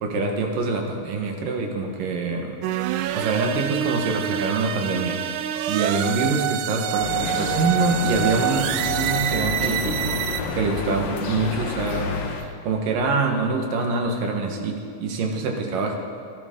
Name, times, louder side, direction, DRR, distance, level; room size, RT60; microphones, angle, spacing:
voice 1, 0.0-2.6 3.1-14.7 15.0-16.0, right 3 dB, 70° right, 2 dB, 3.0 m, -25 dB
sound 1, 2.6-10.4, right 11 dB, 85° right, 1.8 m, -26 dB
sound 2, 7.0-12.4, left 5 dB, 70° left, 2.9 m, -30 dB
27.0 x 11.0 x 3.8 m, 2.4 s
omnidirectional pair, 4.2 m